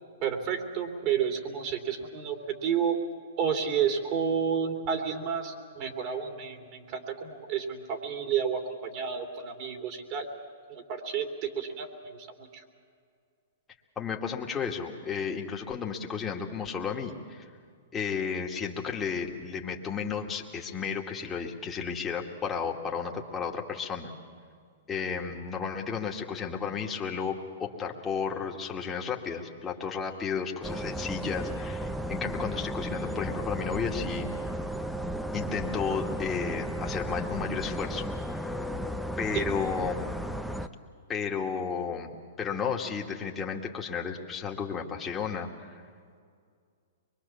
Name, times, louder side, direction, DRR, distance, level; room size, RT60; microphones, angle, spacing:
voice 1, 0.2-3.0 3.4-10.2 10.7-12.6 39.3-39.4, right 7 dB, 40° right, 3 dB, 3.1 m, -31 dB
voice 2, 14.0-17.5 17.9-24.1 24.9-34.3 35.3-38.5 39.2-40.0 41.1-45.7, left 6 dB, 20° left, 0 dB, 2.2 m, -33 dB
sound 1, 30.6-40.7, equal, ahead, 0.9 m, -34 dB
24.0 x 23.0 x 7.2 m, 2.2 s
hypercardioid pair, 120°, 0 cm